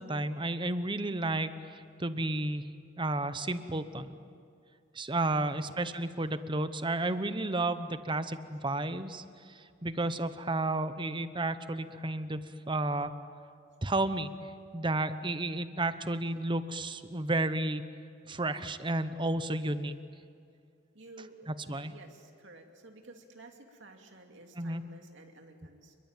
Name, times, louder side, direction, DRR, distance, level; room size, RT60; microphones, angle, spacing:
voice 1, 0.0-2.7 3.0-4.1 4.9-13.1 13.8-14.3 14.7-17.9 18.3-19.9 21.5-21.9 24.6-24.8, right 2 dB, 25° right, 12 dB, 1.0 m, -32 dB
voice 2, 5.5-6.0 20.9-26.0, right 2 dB, 65° right, 3 dB, 2.6 m, -53 dB
28.5 x 22.5 x 9.1 m, 2.3 s
head